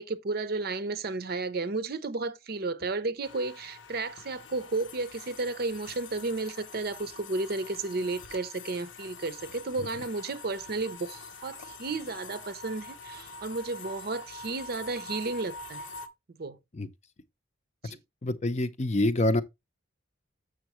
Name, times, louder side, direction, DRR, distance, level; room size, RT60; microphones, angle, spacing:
voice 1, 0.0-15.8 16.4-16.6 17.8-18.0, right 3 dB, 50° right, 0.6 m, -33 dB
sound 1, 3.2-16.1, left 3 dB, 85° left, 0.9 m, -45 dB
voice 2, 18.2-19.4, left 1 dB, 35° left, 0.6 m, -26 dB
7.2 x 6.2 x 3.0 m
head